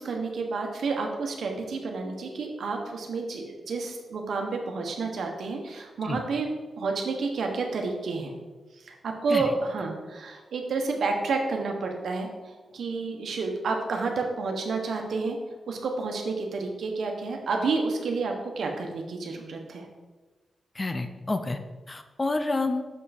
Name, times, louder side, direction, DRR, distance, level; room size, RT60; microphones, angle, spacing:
voice 1, 0.0-6.5 6.8-8.3 8.8-15.4 15.7-19.9, right 4 dB, 80° right, 2 dB, 1.2 m, -30 dB
voice 2, 20.7-21.6 21.9-22.8, left 2 dB, 25° left, 8 dB, 0.6 m, -29 dB
6.7 x 5.5 x 4.3 m, 1.3 s
cardioid pair, 85°, 0 cm